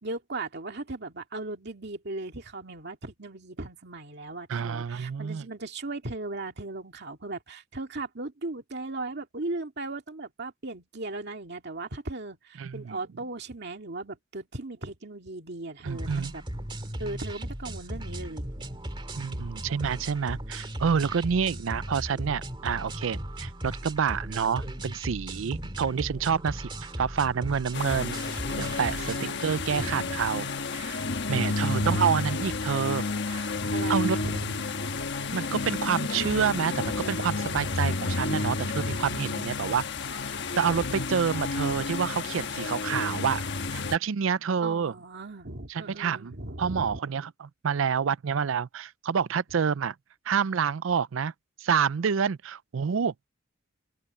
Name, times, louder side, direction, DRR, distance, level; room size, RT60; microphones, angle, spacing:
voice 1, 0.0-16.4 17.0-18.9 29.0-30.3 31.4-32.0 33.7-34.6 44.6-47.0, right 2 dB, 55° right, 2.3 m, -37 dB
voice 2, 4.5-5.5 12.6-13.0 15.8-16.3 19.1-26.7 27.0-28.2 28.6-33.6 33.9-34.2 35.3-39.8 40.6-43.4 43.7-44.9 45.7-49.9 50.3-51.3 51.6-53.3, right 6 dB, 70° right, 0.5 m, -28 dB
sound 1, 15.8-29.2, right 1 dB, 25° right, 2.1 m, -37 dB
sound 2, 27.7-44.0, left 3 dB, 60° left, 1.3 m, -31 dB
open air
head